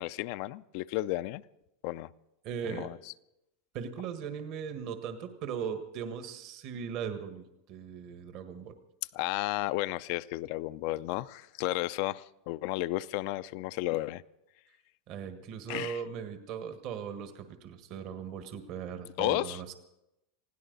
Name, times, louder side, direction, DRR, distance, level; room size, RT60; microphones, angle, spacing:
voice 1, 0.0-1.4 1.8-2.1 2.6-3.0 9.1-14.2 15.7-16.0 19.2-19.6, left 17 dB, 60° left, 15 dB, 0.5 m, -33 dB
voice 2, 2.4-2.9 3.7-8.8 15.1-19.7, right 7 dB, 55° right, 8 dB, 1.6 m, -38 dB
20.0 x 16.5 x 4.0 m, 0.88 s
supercardioid pair, 115°, 0 cm